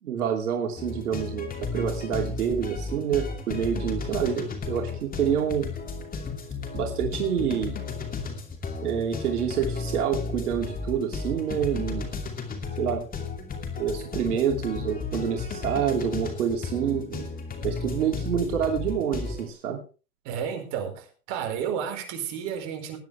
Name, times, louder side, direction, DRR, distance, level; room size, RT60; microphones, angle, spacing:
voice 1, 0.0-5.7 6.7-7.8 8.8-12.1 12.8-13.0 13.8-17.3 17.6-19.8, right 8 dB, 85° right, 2.9 m, -27 dB
sound 1, 0.8-19.4, left 4 dB, 20° left, 2.7 m, -34 dB
voice 2, 20.2-23.0, right 8 dB, 45° right, 4.9 m, -32 dB
19.5 x 10.5 x 3.4 m
hypercardioid pair, 125°, 44 cm